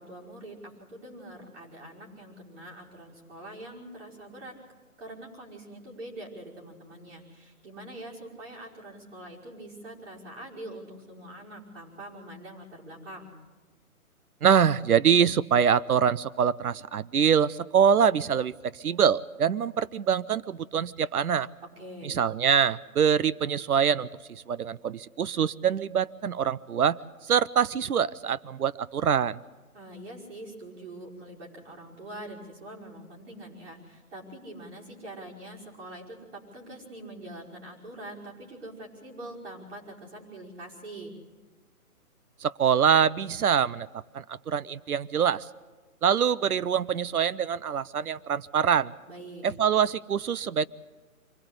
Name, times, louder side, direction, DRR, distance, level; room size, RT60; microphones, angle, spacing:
voice 1, 0.0-4.6 5.0-13.3 21.8-22.2 29.7-41.1 49.1-49.4, right 1 dB, 50° right, -4 dB, 5.6 m, -44 dB
voice 2, 14.4-21.5 22.0-27.0 27.3-29.4 42.4-43.9 44.1-45.4 46.0-48.9 49.4-50.7, right 8 dB, 75° right, 19 dB, 0.7 m, -24 dB
24.5 x 16.5 x 8.2 m, 1.3 s
hypercardioid pair, 170°, 44 cm